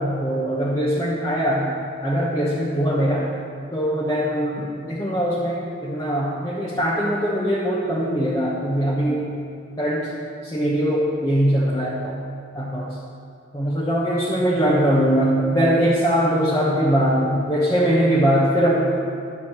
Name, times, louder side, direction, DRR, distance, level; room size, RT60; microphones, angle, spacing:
voice 1, 0.0-1.8 2.0-3.3 3.7-9.3 9.8-10.1 10.4-12.2 12.5-13.0 13.5-18.8, equal, 15° left, -8 dB, 1.2 m, -21 dB
12.0 x 4.8 x 7.3 m, 2.4 s
head